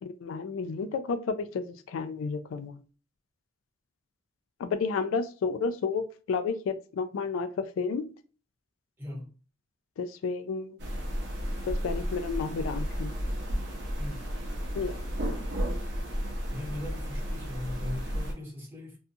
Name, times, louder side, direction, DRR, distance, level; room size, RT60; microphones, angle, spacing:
voice 1, 0.0-2.8 4.6-8.0 10.0-10.8 11.7-13.1 14.7-15.0, left 5 dB, 80° left, 10 dB, 0.3 m, -31 dB
voice 2, 9.0-9.3 14.0-14.2 16.5-19.0, left 1 dB, 10° right, -5 dB, 0.8 m, -39 dB
sound 1, 10.8-18.3, equal, 60° right, 0.7 m, -33 dB
2.5 x 2.3 x 2.6 m, 0.38 s
head